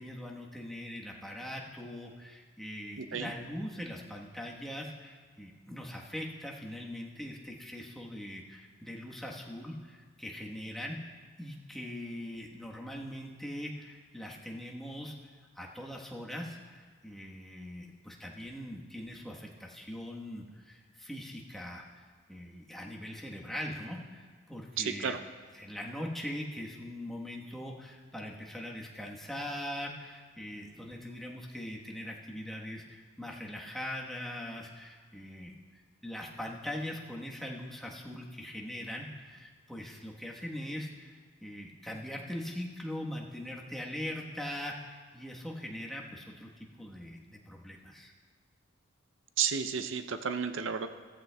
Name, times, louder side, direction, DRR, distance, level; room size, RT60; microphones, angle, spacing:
voice 1, 0.0-15.1 15.5-22.0 22.3-25.2 25.5-35.5 36.0-48.1, left 1 dB, ahead, -2 dB, 1.2 m, -41 dB
voice 2, 3.0-3.3 24.8-25.2 49.4-50.9, right 7 dB, 70° right, 9 dB, 0.5 m, -32 dB
16.0 x 14.0 x 2.3 m, 1.5 s
head